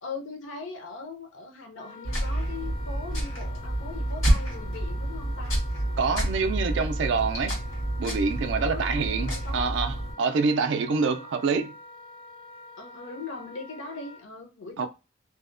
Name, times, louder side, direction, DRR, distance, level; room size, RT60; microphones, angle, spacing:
voice 1, 0.0-5.6 8.6-9.6 11.1-11.3 12.8-14.9, left 3 dB, 70° left, 0.6 m, -40 dB
Wind instrument woodwind instrument, 1.8-14.2, left 2 dB, 25° left, 0.3 m, -46 dB
sound 1, 2.0-10.1, right 1 dB, 90° left, 1.5 m, -29 dB
voice 2, 6.0-7.5 8.0-11.7 14.8-14.9, right 4 dB, 60° right, 0.3 m, -26 dB
2.7 x 2.0 x 2.4 m
head